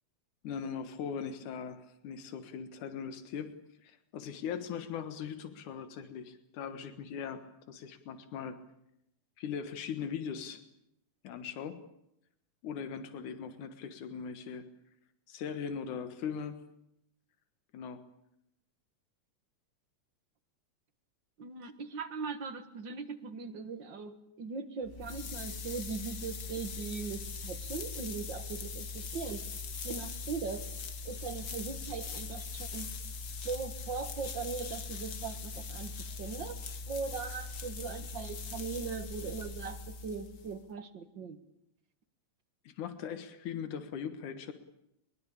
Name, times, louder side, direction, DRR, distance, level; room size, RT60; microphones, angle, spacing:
voice 1, 0.4-3.5 3.8-8.6 9.4-10.6 11.2-11.8 12.6-14.7 15.3-16.6 17.7-18.0 42.6-44.5, left 7 dB, 90° left, 10 dB, 2.9 m, -40 dB
voice 2, 21.4-29.4 29.8-30.7 31.0-32.9 33.4-36.6 36.9-41.4, right 5 dB, 45° right, 10 dB, 2.0 m, -40 dB
sound 1, 24.8-40.6, left 4 dB, 45° left, 1.4 m, -41 dB
23.0 x 22.0 x 8.7 m, 0.79 s
omnidirectional pair, 3.4 m